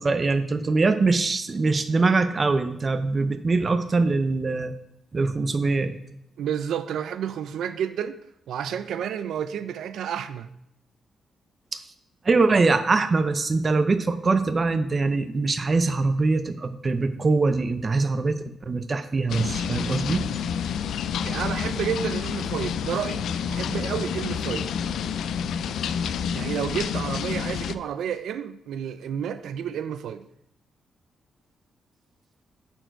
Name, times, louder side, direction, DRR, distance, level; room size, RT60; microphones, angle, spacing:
voice 1, 0.0-4.7 5.1-6.0 12.2-18.4 18.7-20.3, right 3 dB, 25° right, 0.5 m, -23 dB
voice 2, 6.4-8.2 8.5-10.5 21.3-24.7 26.3-30.2, right 8 dB, 85° right, 0.4 m, -30 dB
sound 1, 19.3-27.8, left 7 dB, 80° left, 0.3 m, -29 dB
8.8 x 4.5 x 4.5 m
wide cardioid pair, 175°, 0 cm